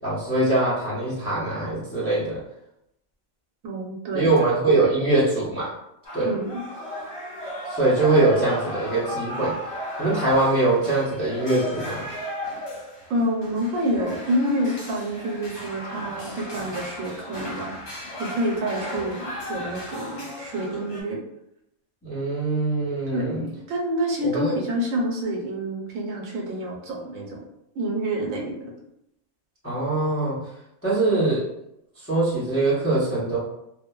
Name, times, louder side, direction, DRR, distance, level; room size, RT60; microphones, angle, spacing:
voice 1, 0.0-2.4 4.1-5.7 6.1-6.3 7.7-9.6 10.0-12.1 22.0-23.4 24.2-24.5 29.6-30.4 30.8-31.5 32.0-33.4, right 2 dB, 20° left, -9 dB, 0.4 m, -22 dB
voice 2, 3.6-4.5 6.2-6.6 13.1-17.7 18.2-21.2 23.1-27.4 27.7-28.7, equal, 80° right, -1 dB, 1.0 m, -28 dB
sound 1, 6.0-21.0, left 1 dB, 85° left, 1.4 m, -35 dB
2.9 x 2.0 x 2.2 m, 0.81 s
omnidirectional pair, 1.4 m